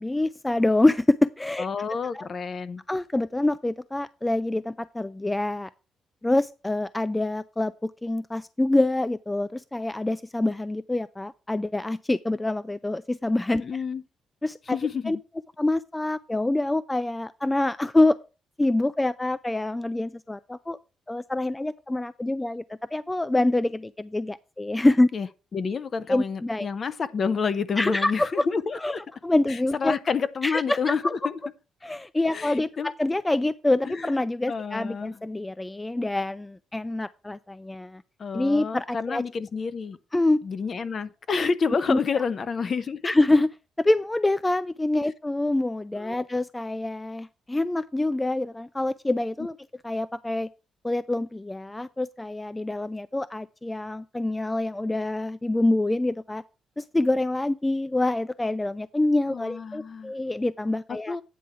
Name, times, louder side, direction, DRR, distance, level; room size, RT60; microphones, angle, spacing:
voice 1, 0.0-1.7 2.1-2.3 2.9-5.7 6.2-13.6 14.4-14.8 15.1-15.2 15.6-18.2 18.6-20.8 21.1-25.1 26.1-26.7 27.8-28.5 28.7-29.0 29.2-30.0 30.4-31.3 31.8-38.0 38.3-39.2 40.1-40.4 41.9-42.0 43.0-43.5 43.8-49.6 49.8-50.5 50.8-56.4 56.8-61.2, left 2 dB, 15° left, 0.3 m, -26 dB
voice 2, 1.6-2.8 13.5-14.0 14.7-15.2 25.1-25.3 25.5-29.0 29.5-31.4 32.3-32.9 33.9-34.2 34.5-35.2 38.2-40.0 40.4-43.1 45.0-45.1 46.0-46.2 59.3-60.1 60.9-61.2, left 5 dB, 45° left, 0.7 m, -29 dB
9.4 x 3.6 x 6.7 m
cardioid pair, 90°, 0 cm